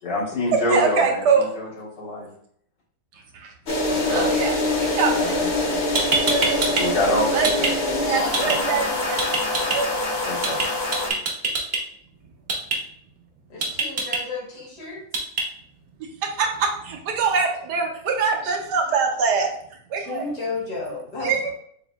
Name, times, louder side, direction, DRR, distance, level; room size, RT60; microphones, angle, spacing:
voice 1, 0.0-2.3 3.8-4.3 5.1-5.5 6.8-7.7 8.4-8.6 9.6-9.7 10.3-10.6, left 1 dB, 85° left, -6 dB, 2.2 m, -27 dB
voice 2, 0.7-1.5 3.1-3.5 4.1-4.5 4.8-5.4 5.7-6.8 7.3-7.7 8.1-9.2 9.7-10.1 16.2-20.2 21.2-21.5, right 5 dB, 75° right, 2 dB, 1.3 m, -24 dB
sound 1, 3.7-11.1, left 2 dB, 50° left, 0.8 m, -24 dB
sound 2, 5.6-5.7 5.9-6.8 7.1-7.7 8.3-8.6 9.2-9.8 10.4-10.6 10.9-11.8 12.5-12.8 13.6-14.2 15.1-15.4, right 3 dB, 45° right, 0.9 m, -23 dB
voice 3, 13.5-15.1 20.0-21.5, left 3 dB, 70° left, -4 dB, 2.1 m, -33 dB
6.8 x 2.6 x 2.3 m, 0.64 s
omnidirectional pair, 1.8 m